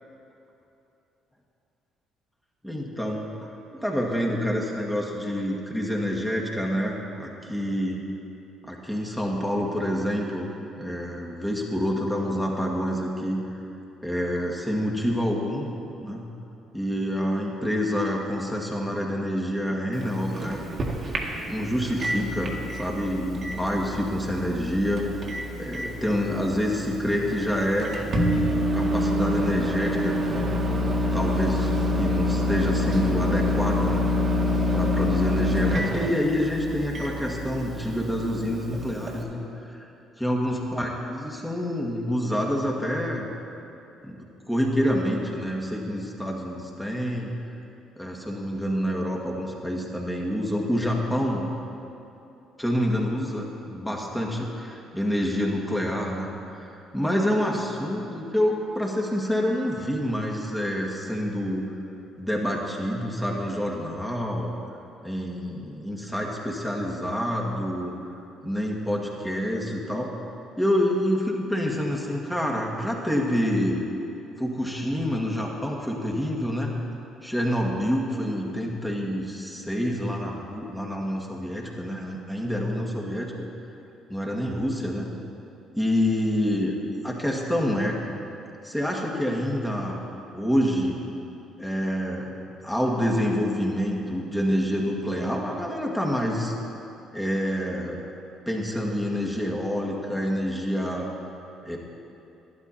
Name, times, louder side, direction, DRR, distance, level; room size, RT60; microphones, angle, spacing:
voice 1, 2.6-3.3 3.7-8.0 8.7-10.5 10.8-13.4 14.0-15.7 16.0-16.3 16.7-20.6 21.5-25.0 25.6-27.9 28.5-30.2 31.1-34.0 34.7-39.9 40.2-43.3 44.0-47.3 48.0-51.5 52.6-56.3 56.6-61.7 62.2-64.5 65.0-67.9 68.4-70.2 70.6-73.8 74.4-76.7 77.2-83.5 84.1-85.1 85.8-86.8 87.0-88.0 88.6-90.0 90.3-91.0 91.6-92.3 92.6-96.5 97.1-98.0 98.5-101.0 101.6-101.8, equal, 5° left, -2 dB, 2.0 m, -27 dB
Microwave oven, 19.9-39.2, left 1 dB, 45° right, 1.7 m, -27 dB
12.0 x 11.0 x 4.3 m, 2.8 s
supercardioid pair, 65°, 0 cm